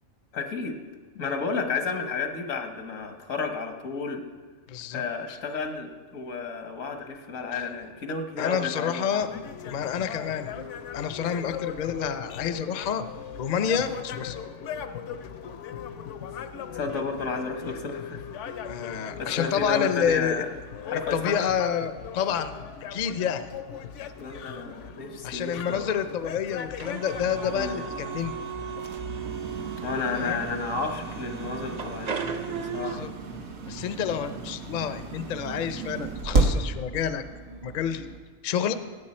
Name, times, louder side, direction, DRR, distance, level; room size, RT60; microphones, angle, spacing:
voice 1, 0.3-0.8 1.1-4.2 4.9-9.3 16.7-18.3 18.9-20.5 20.8-21.5 24.2-26.0 27.5-27.8 29.8-32.2 32.5-33.1, left 4 dB, 90° left, 5 dB, 1.6 m, -32 dB
voice 2, 4.7-5.0 5.3-5.4 8.4-9.3 9.7-10.7 10.9-13.0 13.4-14.4 18.6-20.4 21.1-22.5 22.9-23.4 25.2-28.4 30.1-30.4 33.0-33.1 33.7-37.2 37.5-38.1 38.4-38.7, left 8 dB, 50° left, 10 dB, 0.6 m, -28 dB
sound 1, 9.2-28.9, left 8 dB, 70° left, 0.9 m, -39 dB
sound 2, 26.8-32.9, right 6 dB, 40° right, 0.6 m, -36 dB
sound 3, 27.1-38.2, right 3 dB, 75° right, 1.4 m, -33 dB
16.0 x 8.9 x 4.3 m, 1.5 s
omnidirectional pair, 1.3 m